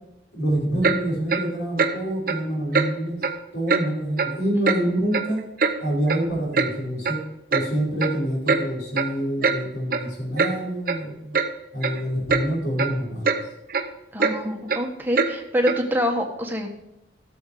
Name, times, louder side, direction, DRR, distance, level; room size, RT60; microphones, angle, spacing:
voice 1, 0.3-3.2 3.5-5.4 5.8-7.2 7.5-11.4 11.7-13.4, right 1 dB, 75° left, -4 dB, 5.3 m, -26 dB
Clock, 0.8-1.0 1.3-1.5 1.8-1.9 2.3-2.4 2.7-2.9 3.2-3.4 3.7-3.8 4.2-4.3 4.7-4.8 5.1-5.8 6.1-6.2 6.5-6.7 7.0-7.2 7.5-7.7 8.0-8.1 8.5-8.6 9.0-9.1 9.4-9.6 9.9-10.0 10.4-10.5 10.9-11.0 11.3-11.5 11.8-12.0 12.3-12.4 12.8-12.9 13.2-13.4 13.7-13.8 14.2-14.3 14.7-14.8 15.2-15.3 15.7-15.8, right 4 dB, 50° right, 0.8 m, -22 dB
voice 2, 14.1-16.7, equal, 10° right, 2 dB, 1.4 m, -25 dB
13.0 x 7.2 x 4.9 m, 0.86 s
head